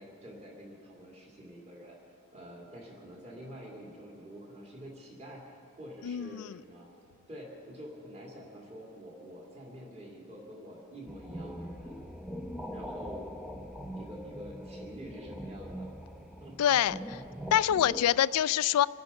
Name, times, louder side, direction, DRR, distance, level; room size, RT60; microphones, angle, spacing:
voice 1, 0.0-2.0 2.3-5.5 5.8-6.9 7.3-12.0 12.7-13.2 13.9-15.9 16.4-16.6, equal, 30° right, -2 dB, 2.6 m, -47 dB
voice 2, 6.0-6.5 16.6-17.2 17.5-18.9, left 10 dB, 90° left, 19 dB, 0.3 m, -26 dB
sound 1, 11.1-18.1, equal, ahead, 0.6 m, -42 dB
25.5 x 9.5 x 5.7 m, 2.6 s
head